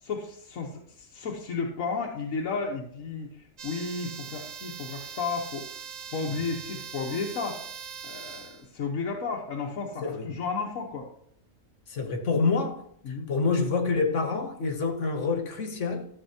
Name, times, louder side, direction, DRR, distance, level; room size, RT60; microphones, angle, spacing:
voice 1, 0.0-5.7 6.1-7.6 8.0-11.1 12.0-12.1 13.0-13.3, left 4 dB, 85° left, 1.5 m, -33 dB
sound 1, 3.6-8.7, right 7 dB, 85° right, 0.3 m, -41 dB
voice 2, 11.9-12.8 13.1-16.1, left 4 dB, 65° left, 1.5 m, -27 dB
13.5 x 7.2 x 2.8 m
omnidirectional pair, 1.4 m